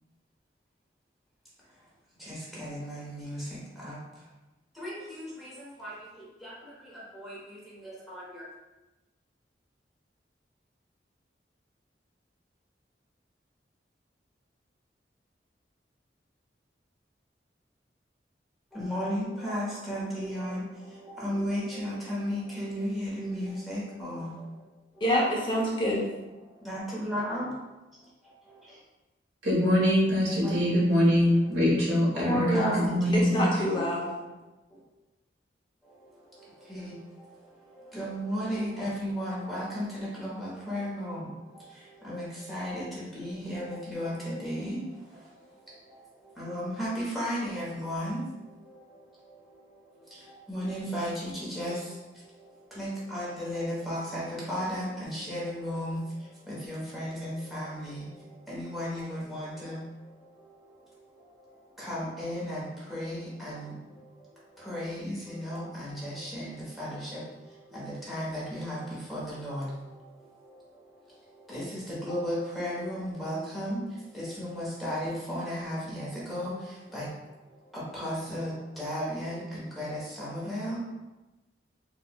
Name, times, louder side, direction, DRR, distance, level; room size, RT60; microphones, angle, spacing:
voice 1, 2.2-4.3 4.7-8.5 18.7-24.7 24.9-25.0 26.4-27.5 30.3-30.9 32.1-33.5 34.2-34.3 34.7-34.8 35.8-80.8, equal, ahead, -8 dB, 1.0 m, -36 dB
voice 2, 25.0-26.1 32.2-32.8 33.1-34.2, equal, 25° left, -4 dB, 0.6 m, -26 dB
voice 3, 29.4-33.4, equal, 75° right, -5 dB, 1.2 m, -23 dB
4.5 x 2.3 x 2.2 m, 1.1 s
head